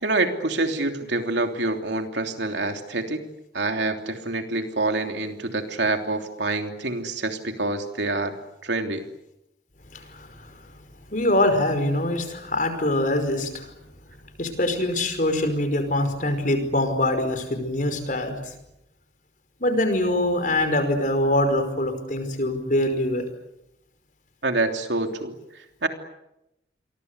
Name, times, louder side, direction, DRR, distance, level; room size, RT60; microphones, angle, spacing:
voice 1, 0.0-3.2 3.5-8.4 8.6-9.0 24.4-25.9, right 2 dB, 70° right, 5 dB, 3.2 m, -26 dB
voice 2, 9.9-10.5 11.1-13.7 14.4-18.5 19.6-23.2, left 1 dB, 45° left, 8 dB, 5.2 m, -24 dB
29.0 x 23.5 x 8.2 m, 0.87 s
head